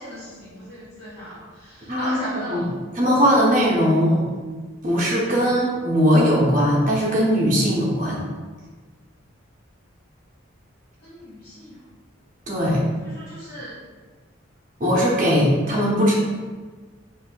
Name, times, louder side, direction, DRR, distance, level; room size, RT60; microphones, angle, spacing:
voice 1, 0.0-2.7 11.0-11.8 13.0-13.8, equal, 50° left, -10 dB, 1.5 m, -37 dB
voice 2, 1.9-2.2 2.5-2.6 3.0-4.2 4.8-8.2 12.5-12.8 14.8-16.1, equal, 40° right, -5 dB, 0.7 m, -19 dB
4.0 x 2.6 x 2.3 m, 1.4 s
head